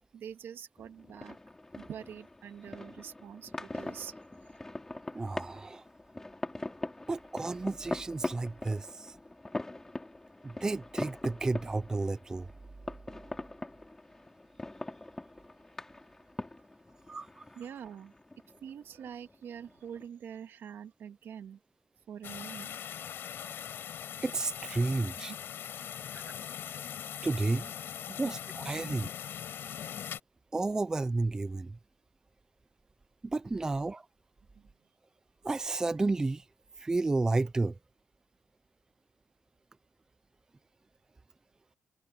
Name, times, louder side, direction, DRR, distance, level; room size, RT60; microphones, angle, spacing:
voice 1, 0.1-1.4 1.8-4.2 17.1-17.2 17.5-18.1 18.6-21.6 22.1-22.8 25.0-25.4 28.2-28.3 28.8-28.9 33.6-33.7 34.5-34.7, right 8 dB, 60° right, 1.7 m, -45 dB
sound 1, 0.8-20.1, left 2 dB, 10° left, 4.1 m, -43 dB
voice 2, 5.1-5.8 7.1-9.2 10.4-12.5 17.1-17.5 24.2-25.3 26.1-26.3 27.2-27.7 28.1-29.1 30.5-31.8 33.2-34.1 35.4-36.5 36.8-37.8, right 3 dB, 15° right, 0.4 m, -32 dB
sound 2, 22.2-30.2, left 9 dB, 60° left, 5.2 m, -41 dB
cardioid pair, 145°, 4 cm